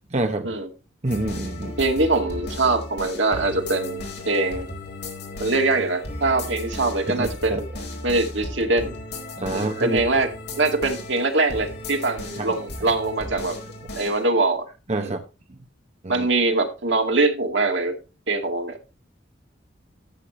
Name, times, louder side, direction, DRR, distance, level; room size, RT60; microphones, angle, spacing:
voice 1, 0.1-0.5 1.0-1.7 7.1-7.6 9.4-10.0 12.4-12.5 14.9-15.2 16.0-16.3, right 2 dB, 35° right, 6 dB, 0.9 m, -27 dB
sound 1, 1.1-14.2, left 1 dB, 60° left, 4.5 m, -35 dB
voice 2, 1.8-4.7 5.4-7.7 8.0-8.9 9.5-10.3 10.6-13.6 14.0-14.7 15.0-15.1 16.1-17.9 18.3-18.8, right 2 dB, 75° right, 4 dB, 2.2 m, -23 dB
13.5 x 8.3 x 3.1 m, 0.30 s
head